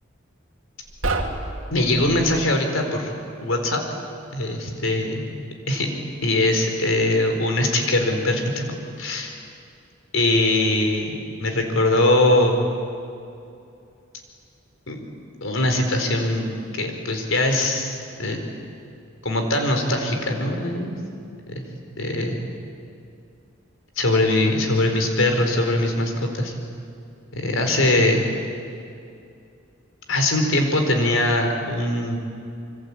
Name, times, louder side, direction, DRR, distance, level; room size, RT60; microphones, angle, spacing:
sound 1, 0.8-2.5, right 2 dB, 70° right, 2.4 m, -29 dB
voice 1, 1.7-3.1 3.4-3.8 4.3-5.3 5.7-5.9 6.2-8.6 9.0-9.3 10.1-12.6 14.9-15.0 15.4-18.5 19.2-21.0 21.5-21.7 22.0-22.4 24.0-26.5 27.3-28.2 30.1-32.2, left 1 dB, 80° left, 4 dB, 4.3 m, -21 dB
26.0 x 24.5 x 8.6 m, 2.5 s
head